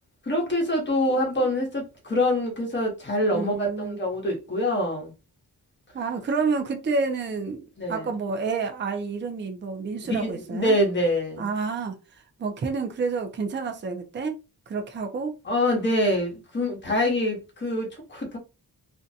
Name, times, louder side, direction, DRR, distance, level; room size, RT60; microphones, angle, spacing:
voice 1, 0.3-5.1 7.8-8.1 10.0-11.5 15.4-18.4, left 1 dB, 30° left, 1.0 m, -25 dB
voice 2, 3.1-4.0 5.9-10.8 11.4-12.0 12.4-14.3 14.7-15.3, right 4 dB, 30° right, 0.4 m, -29 dB
2.6 x 2.2 x 2.6 m
wide cardioid pair, 150°, 36 cm